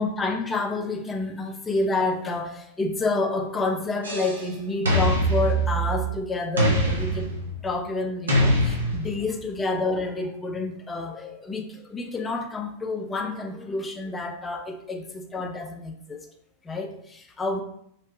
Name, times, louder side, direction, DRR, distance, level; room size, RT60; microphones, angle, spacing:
voice 1, 0.0-7.3 7.6-16.3 16.6-17.6, left 3 dB, 15° left, 4 dB, 0.3 m, -29 dB
sound 1, 4.0-4.5 4.9-6.1 6.6-7.7 8.3-9.3, right 1 dB, 70° right, 0.5 m, -23 dB
2.7 x 2.1 x 2.2 m, 0.73 s
figure-of-eight pair, 90°, 0 cm